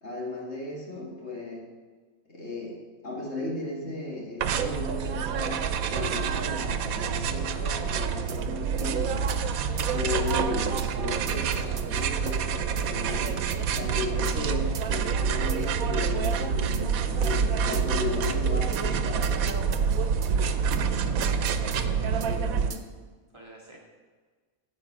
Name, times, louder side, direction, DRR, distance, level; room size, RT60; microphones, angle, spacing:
voice 1, 0.0-1.7 2.3-2.8 3.0-5.6 5.9-9.3 9.8-13.5 13.8-19.6 22.2-22.8, left 3 dB, 50° left, -1 dB, 2.2 m, -35 dB
sound 1, 4.4-22.7, right 6 dB, 90° right, 1.2 m, -27 dB
sound 2, 8.3-8.4 8.8-8.9 9.3-9.4 9.8-9.9 10.3-10.4 10.8-10.9 11.3-12.4 12.8-12.9 13.3-13.9 14.2-14.4 14.7-14.9 15.5-15.8 16.2-16.4 16.7-16.9 17.2-17.4 17.7-17.9 18.2-18.3 18.7-18.9 19.2-20.3 20.7-20.8 21.2-21.8 22.2-22.3 22.7-22.9, right 6 dB, 60° right, 0.3 m, -43 dB
voice 2, 21.2-22.3 23.3-23.8, right 1 dB, 20° right, -3 dB, 2.0 m, -48 dB
9.3 x 8.0 x 6.1 m, 1.4 s
omnidirectional pair, 1.4 m